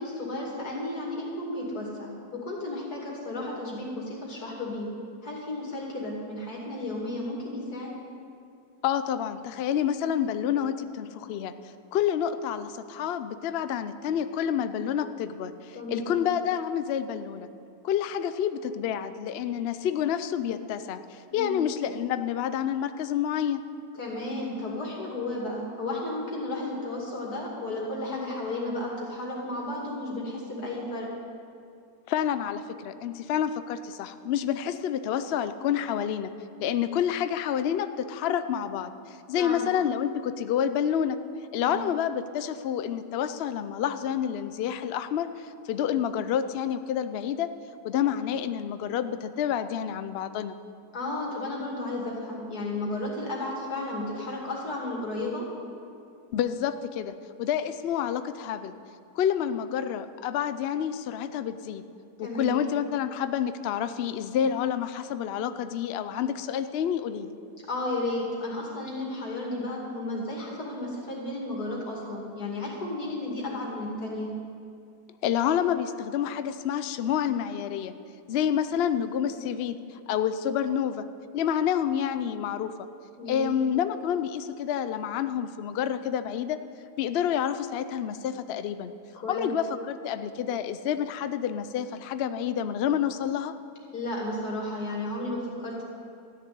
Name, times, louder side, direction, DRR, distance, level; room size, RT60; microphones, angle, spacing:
voice 1, 0.0-4.9 5.2-8.0 15.7-16.2 21.3-21.6 23.9-31.1 39.4-39.7 41.6-41.9 50.9-55.5 62.2-62.7 67.7-74.3 83.2-83.4 89.2-89.5 93.9-95.8, left 2 dB, 65° left, -3 dB, 3.0 m, -33 dB
voice 2, 8.8-11.5 11.9-17.5 17.8-23.6 32.1-36.3 36.6-41.2 41.5-47.5 47.8-50.6 56.3-57.1 57.4-58.7 59.2-61.8 62.2-67.4 75.2-77.9 78.3-81.1 81.3-82.7 83.3-86.6 87.0-88.9 89.3-93.5, left 9 dB, 85° left, 11 dB, 0.5 m, -28 dB
13.5 x 6.8 x 9.3 m, 2.4 s
omnidirectional pair, 1.8 m